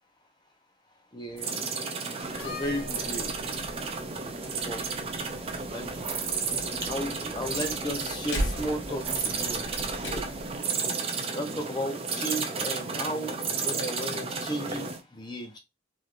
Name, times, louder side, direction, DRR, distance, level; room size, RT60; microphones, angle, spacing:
voice 1, 1.1-1.6 2.4-3.3 4.2-4.8 5.7-5.9 6.8-9.6 10.0-10.2 11.3-13.4 13.6-15.6, equal, 20° left, 0.9 m, -34 dB
sound 1, 1.4-15.0, right 4 dB, 30° right, 0.4 m, -33 dB
Slam, 2.2-10.6, equal, 60° left, 1.0 m, -39 dB
3.3 x 3.0 x 2.4 m
head